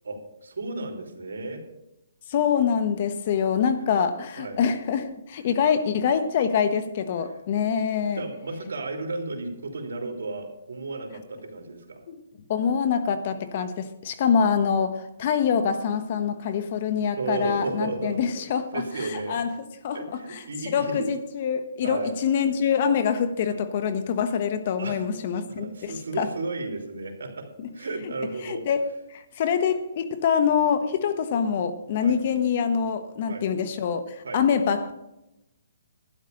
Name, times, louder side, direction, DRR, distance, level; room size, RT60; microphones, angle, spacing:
voice 1, 0.0-1.6 3.8-3.9 4.4-4.6 7.2-7.4 8.1-12.0 17.2-18.2 18.7-19.4 19.9-21.1 21.8-22.1 24.8-27.5 27.7-28.7 32.0-32.2 33.3-33.4 34.2-34.4, right 3 dB, 80° right, 3.0 m, -33 dB
voice 2, 2.3-8.2 12.1-12.2 12.5-19.5 19.8-26.3 28.4-34.9, left 7 dB, 40° left, 1.1 m, -25 dB
12.0 x 10.5 x 5.2 m
hypercardioid pair, 160°, 0 cm